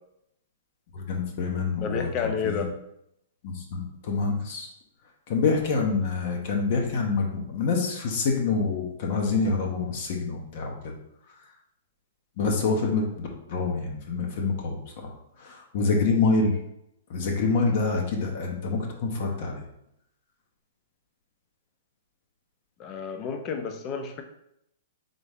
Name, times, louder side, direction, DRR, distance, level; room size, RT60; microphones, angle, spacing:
voice 1, 0.9-2.6 3.4-4.7 5.3-10.9 12.4-16.6 17.1-19.6, left 4 dB, 50° left, 1 dB, 0.9 m, -27 dB
voice 2, 1.8-2.7 22.8-24.2, left 6 dB, 30° left, 5 dB, 0.6 m, -30 dB
3.9 x 3.5 x 3.5 m, 0.78 s
hypercardioid pair, 150°, 0 cm